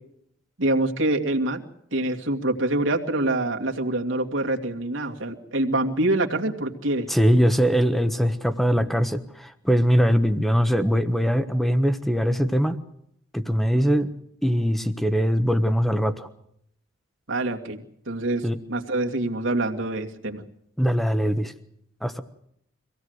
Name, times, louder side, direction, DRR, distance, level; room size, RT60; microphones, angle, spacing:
voice 1, 0.6-1.6 1.9-7.1 17.3-20.4, right 2 dB, 80° right, 2 dB, 2.4 m, -25 dB
voice 2, 7.1-12.8 13.3-14.1 14.4-16.3 18.4-18.6 20.8-21.5 22.0-22.2, equal, ahead, 10 dB, 1.2 m, -21 dB
25.0 x 17.0 x 8.0 m, 0.73 s
head